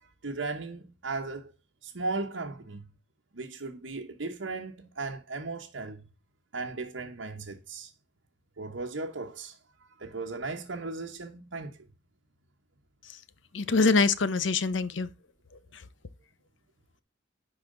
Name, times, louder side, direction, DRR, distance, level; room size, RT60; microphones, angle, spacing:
voice 1, 0.2-1.5 1.8-2.9 3.3-6.0 6.5-7.9 8.6-9.6 10.0-11.8, right 3 dB, 90° right, 1.1 m, -36 dB
voice 2, 13.5-15.1, left 4 dB, 85° left, 0.7 m, -24 dB
11.0 x 4.2 x 3.8 m
head